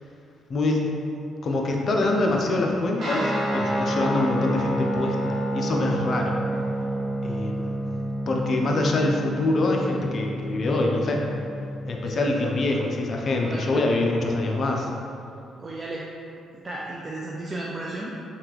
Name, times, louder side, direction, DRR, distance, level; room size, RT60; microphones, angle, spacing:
voice 1, 1.4-6.4 7.2-7.8 8.3-11.2 11.8-14.9, left 2 dB, 50° left, 0 dB, 0.4 m, -25 dB
Guitar, 3.0-12.8, right 1 dB, 55° right, 1.0 m, -29 dB
voice 2, 15.6-16.1 16.6-18.2, right 2 dB, 30° right, -3 dB, 0.3 m, -34 dB
3.6 x 2.3 x 2.9 m, 2.6 s
cardioid pair, 90°, 0 cm